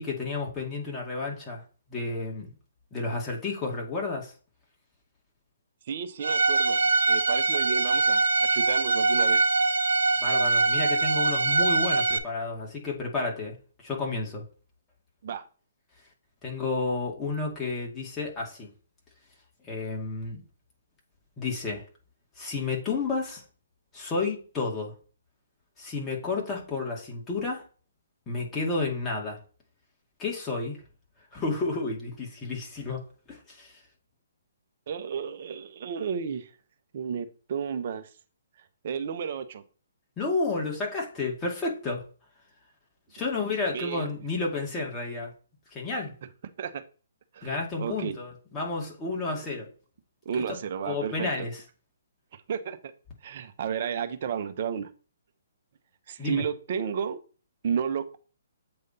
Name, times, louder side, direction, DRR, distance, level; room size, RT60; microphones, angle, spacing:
voice 1, 0.0-1.6 1.9-2.5 2.9-4.3 10.2-13.5 13.8-14.4 16.4-18.7 19.6-20.4 21.4-21.8 22.4-23.4 23.9-24.9 25.8-27.6 28.3-29.4 30.2-30.8 31.3-33.8 40.2-42.0 43.1-45.3 45.7-46.1 47.4-49.7 50.4-50.5 50.8-51.6 56.2-56.4, left 3 dB, 20° left, -2 dB, 2.3 m, -31 dB
voice 2, 5.9-6.8 7.1-9.5 15.2-15.4 34.9-36.5 36.9-38.1 38.8-39.6 43.7-44.1 46.6-46.8 47.3-48.1 50.2-51.3 52.3-52.9 53.2-54.9 56.1-57.2 57.6-58.2, right 7 dB, 50° right, 9 dB, 0.9 m, -32 dB
Bowed string instrument, 6.2-12.2, right 3 dB, 80° right, 0.6 m, -23 dB
7.9 x 3.4 x 4.2 m, 0.38 s
figure-of-eight pair, 135°, 0 cm